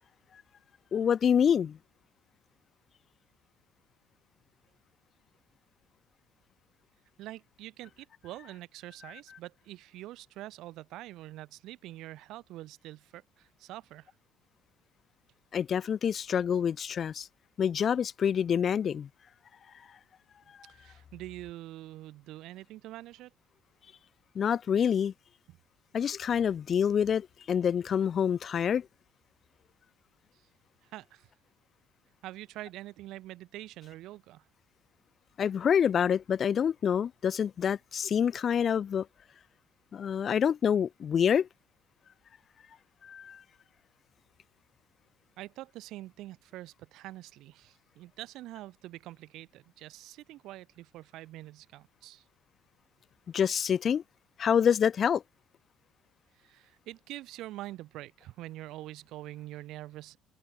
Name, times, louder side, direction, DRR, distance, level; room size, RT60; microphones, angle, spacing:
voice 1, 0.9-1.8 15.5-17.3 17.6-19.1 24.3-25.1 25.9-28.9 35.4-39.1 39.9-41.5 43.0-43.4 53.3-54.0 54.4-55.2, left 8 dB, 40° left, 0.7 m, -27 dB
voice 2, 7.2-14.1 20.7-23.3 25.5-25.6 30.3-30.4 30.8-31.3 32.2-34.5 45.4-52.2 56.3-60.2, right 16 dB, 70° right, 4.8 m, -45 dB
open air
supercardioid pair, 100°, 0 cm